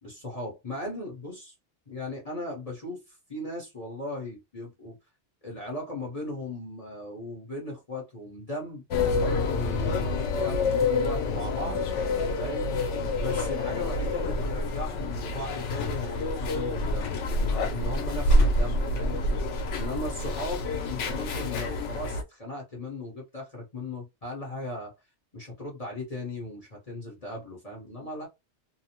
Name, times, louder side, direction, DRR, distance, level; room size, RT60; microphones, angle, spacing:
voice 1, 0.0-1.5 1.9-4.9 5.4-8.8 9.1-12.7 13.2-19.2 19.8-24.9 25.3-28.3, left 2 dB, 35° left, 0.9 m, -37 dB
Tram in Berlin, 8.9-22.2, left 2 dB, 85° left, 1.0 m, -27 dB
2.8 x 2.0 x 2.9 m
omnidirectional pair, 1.2 m